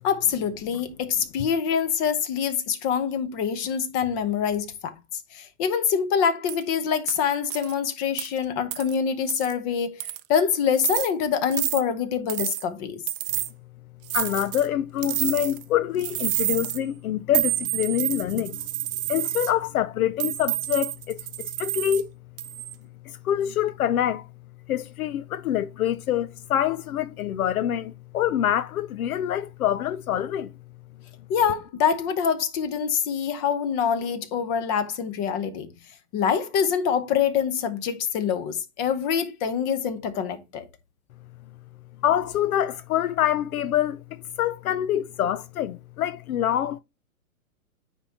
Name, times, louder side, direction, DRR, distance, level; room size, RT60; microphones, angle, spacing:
voice 1, 0.0-4.9 5.3-13.0 31.3-35.7 36.1-40.6, left 7 dB, 30° left, 0.8 m, -25 dB
sound 1, 6.5-6.6 7.1-7.2 7.5-7.7 8.2-8.3 8.7-8.9 9.3-9.5 10.0-10.3 10.8-11.1 11.5-11.8 12.3-12.6 13.1-13.5 14.1-14.7 15.0-15.6 16.0-16.8 17.3-19.5 20.2-22.0 22.4-22.7, right 15 dB, 40° right, 0.5 m, -29 dB
voice 2, 14.1-18.7 19.1-22.1 23.1-24.3 24.7-30.5 42.0-46.8, left 11 dB, 80° left, 0.6 m, -26 dB
9.5 x 3.7 x 2.8 m
hypercardioid pair, 130°, 42 cm